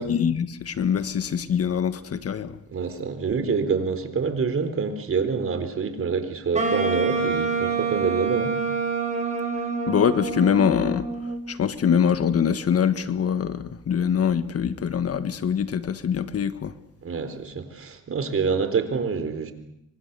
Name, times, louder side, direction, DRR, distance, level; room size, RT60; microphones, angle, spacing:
voice 1, 0.1-2.6 9.9-11.1 11.5-16.7, left 7 dB, 50° left, 1.6 m, -23 dB
voice 2, 2.7-8.5 17.0-19.5, right 5 dB, 45° right, 4.0 m, -26 dB
Wind instrument woodwind instrument, 6.5-11.6, right 4 dB, 25° right, 7.1 m, -27 dB
27.5 x 24.5 x 6.9 m
cardioid pair, 90°, 30 cm